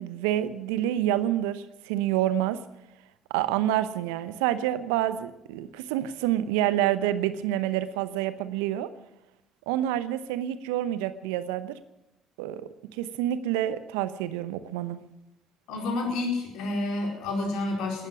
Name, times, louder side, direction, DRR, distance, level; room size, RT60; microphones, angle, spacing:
voice 1, 0.0-2.6 3.3-8.9 9.7-11.8 12.4-15.0, right 12 dB, 75° right, 14 dB, 0.8 m, -28 dB
voice 2, 15.7-18.1, left 2 dB, 65° left, 1 dB, 4.7 m, -29 dB
18.5 x 12.0 x 6.1 m, 0.94 s
figure-of-eight pair, 50°, 0 cm